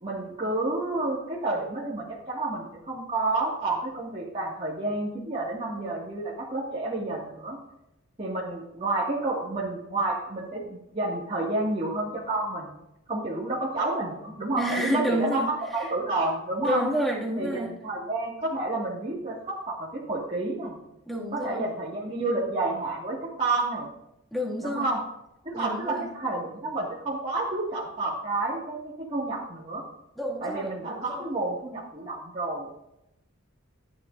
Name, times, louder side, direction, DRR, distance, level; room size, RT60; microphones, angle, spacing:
voice 1, 0.0-7.6 8.2-12.8 13.1-16.9 17.4-20.8 21.3-23.9 24.6-25.0 25.4-29.8 30.4-32.7, right 2 dB, 30° right, -7 dB, 2.1 m, -30 dB
voice 2, 14.6-15.9 16.6-17.7 21.0-21.6 24.3-24.9 25.5-26.1 30.2-31.3, equal, ahead, -4 dB, 2.2 m, -30 dB
14.5 x 10.0 x 2.6 m, 0.83 s
head